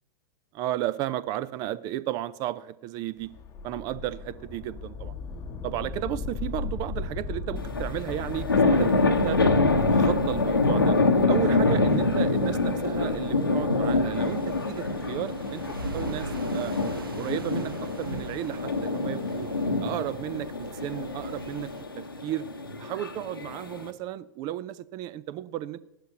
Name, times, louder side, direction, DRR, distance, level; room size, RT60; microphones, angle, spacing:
voice 1, 0.5-3.3 3.6-5.1 5.6-9.4 9.9-11.0 11.3-15.6 15.9-16.7 17.2-19.5 19.8-21.7 21.9-22.4 22.8-25.8, right 13 dB, 35° right, 17 dB, 0.5 m, -33 dB
sound 1, 3.2-16.3, left 4 dB, 25° left, 0.9 m, -38 dB
sound 2, 7.6-23.9, left 3 dB, 85° left, 1.1 m, -26 dB
sound 3, 14.1-21.8, right 3 dB, 80° right, 1.2 m, -42 dB
14.5 x 11.5 x 2.9 m, 0.92 s
figure-of-eight pair, 100°, 12 cm